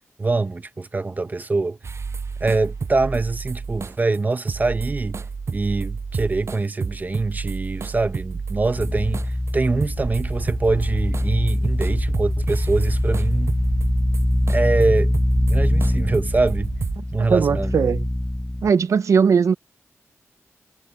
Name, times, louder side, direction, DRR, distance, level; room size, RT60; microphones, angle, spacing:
voice 1, 0.2-1.8 2.4-5.2 5.5-9.3 9.5-13.5 14.5-15.1 15.5-16.7 17.1-17.7, right 3 dB, 35° right, 0.9 m, -24 dB
sound 1, 1.8-4.2 4.5-17.0, right 5 dB, 65° right, 8.0 m, -31 dB
sound 2, 8.8-18.7, left 1 dB, 10° left, 0.7 m, -23 dB
voice 2, 17.2-18.1 18.6-19.6, right 6 dB, 85° right, 0.5 m, -19 dB
wide cardioid pair, 75°, 5 cm